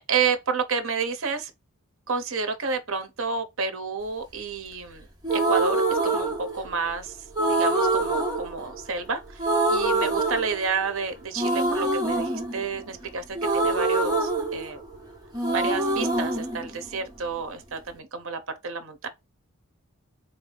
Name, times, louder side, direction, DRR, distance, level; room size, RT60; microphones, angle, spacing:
voice 1, 0.0-1.5 2.1-9.4 9.7-14.8 15.5-19.1, right 5 dB, 65° right, 0.8 m, -30 dB
sound 1, 5.2-6.9 7.3-9.1 9.4-11.0 11.3-15.1 15.3-17.4, right 2 dB, 20° right, 1.4 m, -25 dB
4.0 x 2.7 x 3.2 m
head